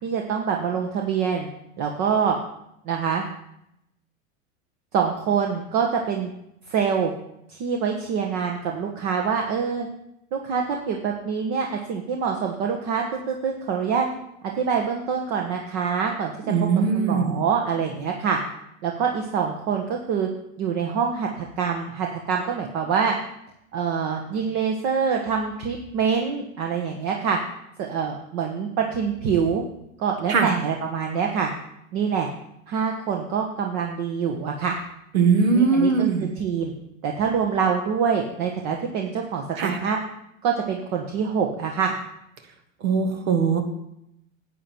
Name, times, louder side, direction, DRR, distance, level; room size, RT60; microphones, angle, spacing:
voice 1, 0.0-1.5 1.8-2.4 2.8-3.2 4.9-6.3 6.7-7.1 7.5-9.9 10.3-14.1 14.6-16.3 16.9-18.4 18.8-20.3 20.6-23.1 23.7-27.4 27.8-29.6 30.0-31.5 31.9-32.3 32.7-34.8 35.5-35.9 36.2-36.7 37.0-40.0 40.4-42.0, right 6 dB, 55° right, 2 dB, 1.5 m, -25 dB
voice 2, 16.5-17.4 30.3-30.5 35.1-36.3 39.6-39.8 42.8-43.6, right 5 dB, 85° right, 6 dB, 1.8 m, -20 dB
11.0 x 8.0 x 4.5 m, 0.79 s
hypercardioid pair, 95°, 40 cm